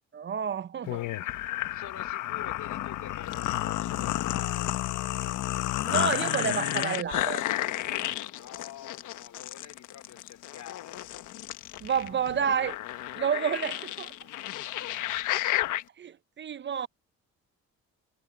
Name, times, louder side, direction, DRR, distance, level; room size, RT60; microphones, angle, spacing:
voice 1, 0.1-1.0 5.8-7.4 11.8-12.8 13.2-14.1 16.0-16.9, right 7 dB, 40° right, 0.6 m, -30 dB
sound 1, 0.9-15.8, left 14 dB, 90° left, 1.4 m, -31 dB
voice 2, 1.7-4.7 8.3-11.0, left 10 dB, 70° left, 3.6 m, -46 dB
cardioid pair, 90°, 30 cm